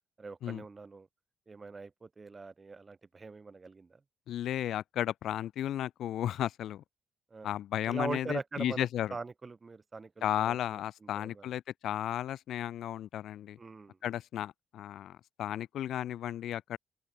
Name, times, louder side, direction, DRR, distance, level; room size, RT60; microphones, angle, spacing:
voice 1, 0.2-1.1 1.5-4.0 7.3-7.5 7.9-10.8 11.1-11.5 13.6-14.0, right 4 dB, 30° right, 2.0 m, -42 dB
voice 2, 4.3-6.8 7.4-9.2 10.2-13.6 14.0-16.8, left 11 dB, 75° left, 1.9 m, -34 dB
open air
cardioid pair, 90°, 0 cm